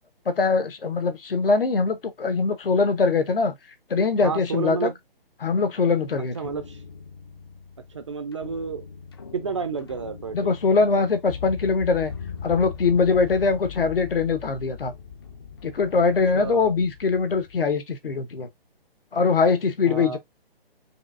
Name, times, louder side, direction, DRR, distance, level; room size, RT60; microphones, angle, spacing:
voice 1, 0.4-3.5 3.9-4.9 5.4-6.4 10.3-12.1 12.4-14.9 15.6-18.5 19.1-20.2, left 4 dB, 70° left, 1.0 m, -22 dB
voice 2, 4.2-4.9 6.3-6.8 7.9-8.8 9.3-10.5 16.3-16.8 19.9-20.2, right 5 dB, 30° right, 0.4 m, -30 dB
sound 1, 6.4-17.6, left 7 dB, 25° left, 0.4 m, -40 dB
4.8 x 2.6 x 2.4 m
figure-of-eight pair, 145°, 30 cm